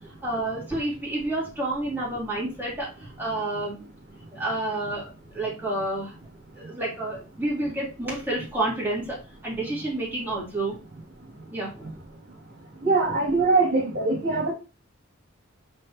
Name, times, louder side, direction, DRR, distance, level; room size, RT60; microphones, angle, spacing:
voice 1, 0.2-3.8 4.3-6.1 6.5-10.8 11.5-11.9, right 2 dB, 10° right, -7 dB, 3.3 m, -29 dB
voice 2, 12.8-14.5, right 3 dB, 55° right, -1 dB, 2.3 m, -22 dB
6.4 x 5.2 x 2.8 m, 0.31 s
head